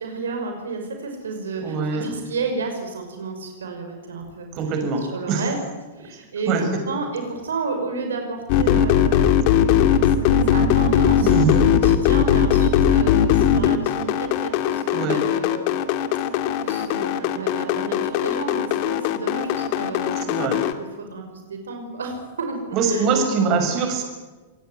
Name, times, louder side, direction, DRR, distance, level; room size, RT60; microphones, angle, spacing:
voice 1, 0.0-4.5 5.1-5.6 5.9-15.7 16.6-23.1, right 4 dB, 70° right, 4 dB, 5.7 m, -32 dB
voice 2, 1.6-2.1 4.5-5.4 6.5-6.6 8.6-8.8 11.2-11.6 14.9-15.2 20.2-20.6 22.7-24.0, right 4 dB, 40° right, 5 dB, 6.3 m, -23 dB
sound 1, 8.5-20.7, left 9 dB, 45° left, 2.2 m, -19 dB
27.5 x 20.0 x 9.3 m, 1.2 s
figure-of-eight pair, 100°, 0 cm